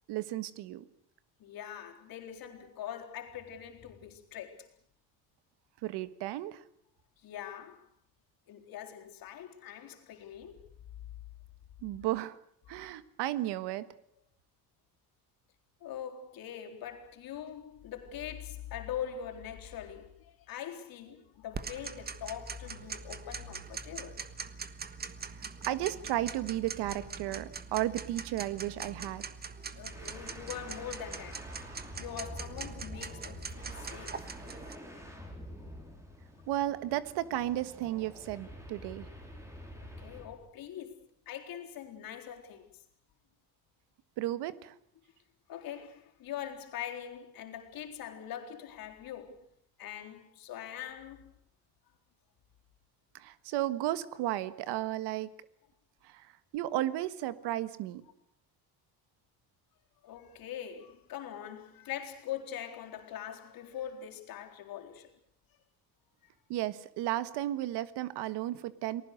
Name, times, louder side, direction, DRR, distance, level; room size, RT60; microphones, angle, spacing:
voice 1, 0.1-0.8 5.8-6.6 11.8-12.4 12.7-13.8 25.7-29.2 36.5-39.1 44.2-44.7 53.1-55.3 56.0-56.3 56.5-58.0 66.5-69.0, right 14 dB, 80° right, 1.5 m, -34 dB
voice 2, 1.4-4.7 7.2-7.8 8.5-10.7 15.8-24.2 29.7-31.4 31.9-34.2 39.8-42.8 45.5-49.4 49.8-51.3 60.0-65.1, left 10 dB, 60° left, 4.1 m, -43 dB
Tick-tock, 21.5-34.7, right 5 dB, 25° right, 1.4 m, -43 dB
sound 1, 29.8-40.4, equal, 5° right, 4.9 m, -47 dB
29.5 x 20.5 x 6.6 m
cardioid pair, 145°, 40 cm